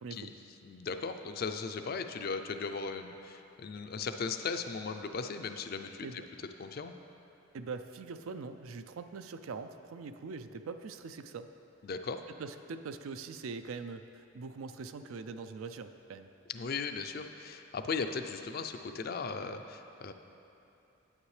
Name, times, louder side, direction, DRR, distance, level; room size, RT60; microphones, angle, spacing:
voice 1, 0.0-0.3 6.0-6.3 7.5-11.5 12.4-16.3, right 4 dB, 80° right, 9 dB, 0.4 m, -42 dB
voice 2, 0.6-6.1 6.6-6.9 11.8-12.2 16.5-20.1, left 4 dB, 45° left, 7 dB, 0.4 m, -37 dB
9.7 x 8.8 x 3.2 m, 2.8 s
head